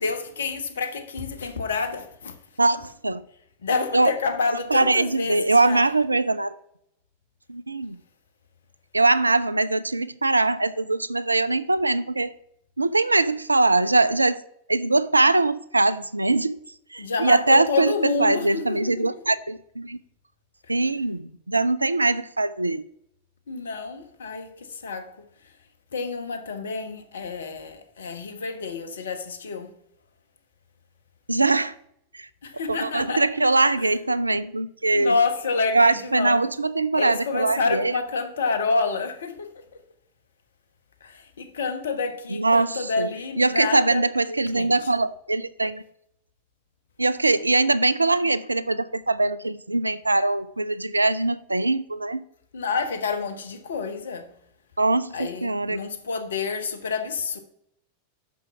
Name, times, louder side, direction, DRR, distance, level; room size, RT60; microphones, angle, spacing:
voice 1, 0.0-2.6 3.6-5.9 17.0-19.2 20.6-20.8 23.5-29.8 32.4-33.3 33.8-34.0 34.9-36.6 36.9-39.8 41.0-44.9 52.5-54.4 55.1-57.4, left 4 dB, 65° left, 1.1 m, -29 dB
voice 2, 2.6-3.2 3.9-4.1 4.7-6.5 7.5-8.0 8.9-12.3 12.8-14.4 14.7-16.6 16.9-17.9 18.2-20.0 20.7-22.8 31.3-31.7 32.1-32.3 32.8-35.1 35.7-37.9 42.3-43.1 43.4-45.8 47.0-52.2 54.8-55.8, right 2 dB, 80° right, 0.4 m, -22 dB
6.2 x 6.1 x 5.9 m
figure-of-eight pair, 90°, 0 cm